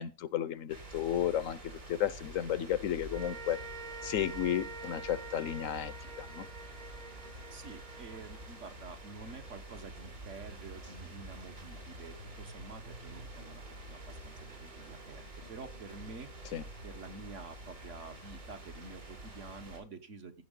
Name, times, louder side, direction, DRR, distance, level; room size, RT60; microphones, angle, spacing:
voice 1, 0.0-3.6 4.0-6.5 16.5-16.6, left 10 dB, 80° left, 1.1 m, -33 dB
sound 1, 0.7-19.8, right 1 dB, 85° right, 4.7 m, -48 dB
sound 2, 3.1-9.5, right 4 dB, 45° right, 0.6 m, -47 dB
voice 2, 7.5-15.2 15.5-16.3 16.8-20.4, right 4 dB, 65° right, 1.6 m, -48 dB
15.5 x 6.2 x 3.8 m
omnidirectional pair, 1.4 m